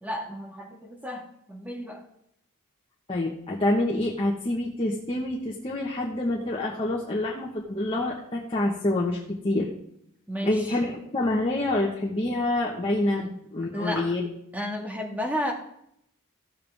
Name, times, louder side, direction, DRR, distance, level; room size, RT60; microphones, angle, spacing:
voice 1, 0.0-2.0 10.3-10.8 13.2-13.3 13.7-14.1 14.5-15.5, equal, 5° right, 2 dB, 1.7 m, -32 dB
voice 2, 3.1-9.7 10.4-13.2 13.5-14.2, left 1 dB, 25° left, -3 dB, 1.4 m, -27 dB
15.0 x 7.8 x 3.6 m, 0.74 s
head